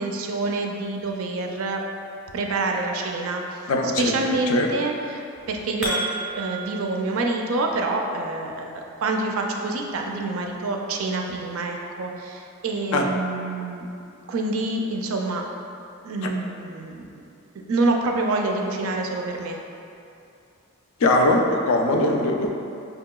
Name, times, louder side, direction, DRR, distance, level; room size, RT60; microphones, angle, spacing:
voice 1, 0.0-1.8 2.3-3.4 4.0-6.0 6.3-13.8 14.3-15.4 16.0-17.2 17.7-19.6, right 2 dB, 70° right, 2 dB, 0.4 m, -27 dB
voice 2, 3.7-4.7 12.9-13.1 21.0-22.5, left 2 dB, 70° left, 2 dB, 0.4 m, -21 dB
sound 1, 5.3-6.8, right 2 dB, 5° right, 0.5 m, -30 dB
5.2 x 2.8 x 2.2 m, 2.6 s
head